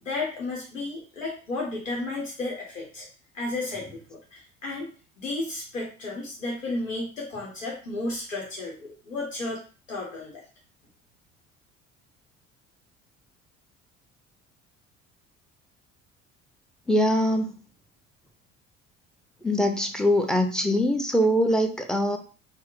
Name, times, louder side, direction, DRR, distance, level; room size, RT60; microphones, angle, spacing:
voice 1, 0.0-3.1 3.3-4.9 5.2-9.6 9.9-10.4, left 2 dB, 85° left, -3 dB, 0.9 m, -33 dB
voice 2, 16.9-17.5 19.4-22.2, equal, ahead, 5 dB, 0.6 m, -23 dB
4.2 x 2.1 x 3.8 m, 0.37 s
figure-of-eight pair, 55°, 38 cm